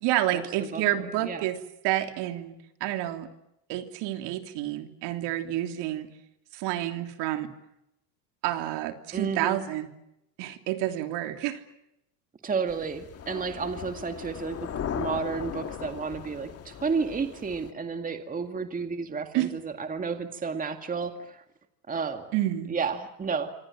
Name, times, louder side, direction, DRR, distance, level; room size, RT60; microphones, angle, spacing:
voice 1, 0.0-1.6 1.8-3.3 3.7-6.1 6.5-7.5 8.4-9.9 10.4-11.6 19.3-19.5 22.3-22.8, right 13 dB, 55° right, 6 dB, 3.2 m, -29 dB
voice 2, 9.1-9.6 12.4-21.4 21.9-22.3 22.7-23.5, right 5 dB, 15° right, 6 dB, 2.1 m, -32 dB
sound 1, 12.7-17.7, left 8 dB, 30° left, 1.9 m, -38 dB
27.0 x 26.0 x 7.7 m, 0.83 s
supercardioid pair, 125°, 48 cm